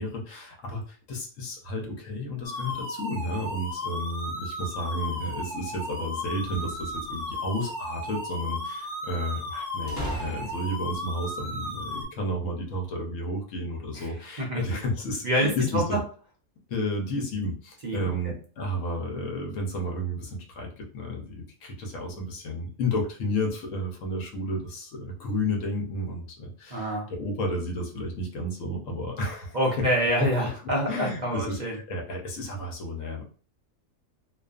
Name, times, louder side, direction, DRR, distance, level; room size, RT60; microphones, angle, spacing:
voice 1, 0.0-16.0 16.7-29.8 30.9-33.2, left 1 dB, 70° left, 0 dB, 1.0 m, -32 dB
sound 1, 2.4-12.1, left 1 dB, 50° left, 1.3 m, -35 dB
sound 2, 6.4-7.4 9.9-10.9, equal, 25° left, 0.5 m, -37 dB
voice 2, 15.2-16.0 17.8-18.1 26.7-27.1 29.5-31.8, equal, 60° right, -2 dB, 0.4 m, -26 dB
2.4 x 2.4 x 2.3 m, 0.42 s
omnidirectional pair, 1.5 m